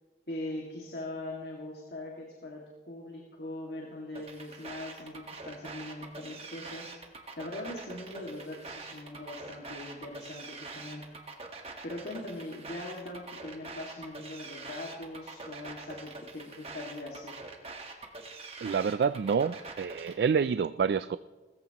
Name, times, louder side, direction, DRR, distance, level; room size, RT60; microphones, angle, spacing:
voice 1, 0.3-6.9 7.4-11.0 11.8-17.3, left 1 dB, 75° left, -2 dB, 2.1 m, -41 dB
sound 1, 4.1-20.1, right 3 dB, 35° right, 1.5 m, -44 dB
voice 2, 18.6-21.2, right 6 dB, 70° right, 15 dB, 0.3 m, -28 dB
19.5 x 14.5 x 3.0 m, 1.3 s
head